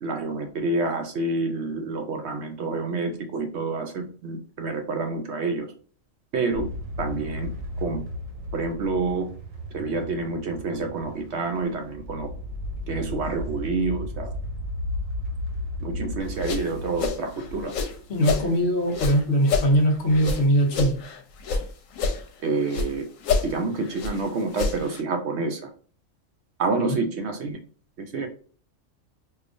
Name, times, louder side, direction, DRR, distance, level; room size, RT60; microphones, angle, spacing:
voice 1, 0.0-5.7 6.3-6.7 7.0-7.5 7.8-8.0 8.5-9.3 9.7-12.3 12.9-14.3 15.8-17.7 22.4-23.0 23.4-25.6 26.6-27.6 28.0-28.3, right 3 dB, 65° right, 5 dB, 0.8 m, -28 dB
sound 1, 6.5-18.8 19.2-20.0 20.3-20.6, left 1 dB, 90° right, 1.1 m, -35 dB
sound 2, 16.2-18.5 18.9-21.6 21.9-22.9 23.2-25.0, left 5 dB, 90° left, 1.0 m, -28 dB
voice 2, 18.1-21.0 26.8-27.1, equal, 60° left, 2 dB, 0.9 m, -21 dB
4.7 x 2.3 x 2.5 m, 0.43 s
omnidirectional pair, 1.3 m